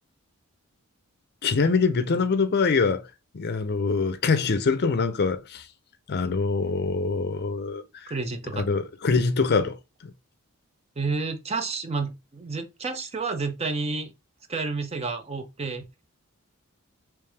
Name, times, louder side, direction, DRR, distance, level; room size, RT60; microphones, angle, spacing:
voice 1, 1.4-3.1 3.3-5.6 6.1-8.1 8.5-9.8, left 4 dB, 50° left, 0.5 m, -24 dB
voice 2, 8.1-8.7 11.0-14.1 14.5-15.9, right 4 dB, 30° right, 0.5 m, -30 dB
3.3 x 3.1 x 3.3 m
head